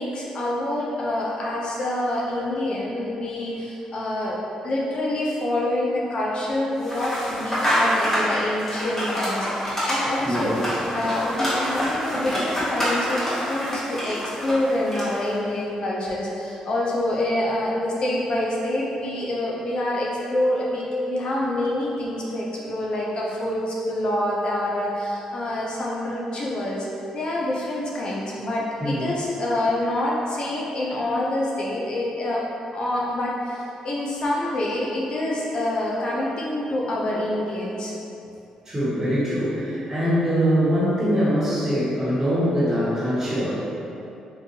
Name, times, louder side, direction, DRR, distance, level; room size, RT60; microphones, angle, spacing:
voice 1, 0.0-4.4 4.6-10.6 10.9-26.9 27.1-32.4 32.7-37.9, left 1 dB, 50° left, -4 dB, 0.5 m, -26 dB
sound 1, 6.8-15.3, equal, 20° left, 1.1 m, -26 dB
voice 2, 10.2-10.5 28.8-29.1 38.6-43.7, equal, 25° right, -9 dB, 1.2 m, -23 dB
3.7 x 2.6 x 2.7 m, 2.8 s
cardioid pair, 100°, 2 cm